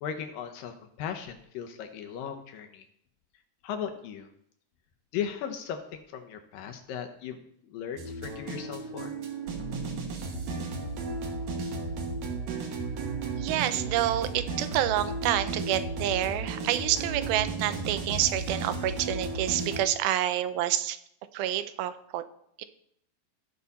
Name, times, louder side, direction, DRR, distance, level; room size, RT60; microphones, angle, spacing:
voice 1, 0.0-2.9 3.6-4.3 5.1-7.4 7.6-9.2, left 8 dB, 75° left, 5 dB, 2.5 m, -37 dB
sound 1, 8.0-19.8, right 3 dB, 60° right, 2.5 m, -34 dB
voice 2, 13.4-21.0 21.3-22.2 22.6-22.7, right 12 dB, 85° right, 12 dB, 2.5 m, -28 dB
16.0 x 5.6 x 4.1 m, 0.69 s
omnidirectional pair, 4.2 m